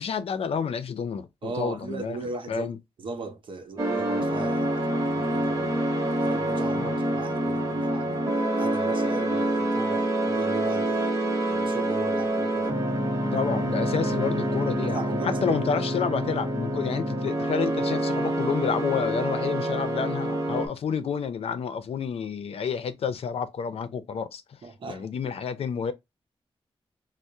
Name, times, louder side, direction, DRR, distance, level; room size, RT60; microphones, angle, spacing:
voice 1, 0.0-2.2 2.5-2.8 6.7-7.1 13.3-24.6 24.9-25.9, left 6 dB, 80° left, 0.5 m, -29 dB
voice 2, 1.4-2.7 3.0-5.8 6.2-8.2 8.6-11.1 11.4-12.8 14.8-15.6 24.6-25.1, right 3 dB, 55° right, 0.7 m, -37 dB
sound 1, 3.8-20.7, right 1 dB, 35° right, 0.9 m, -27 dB
4.5 x 2.0 x 2.6 m
wide cardioid pair, 170°, 10 cm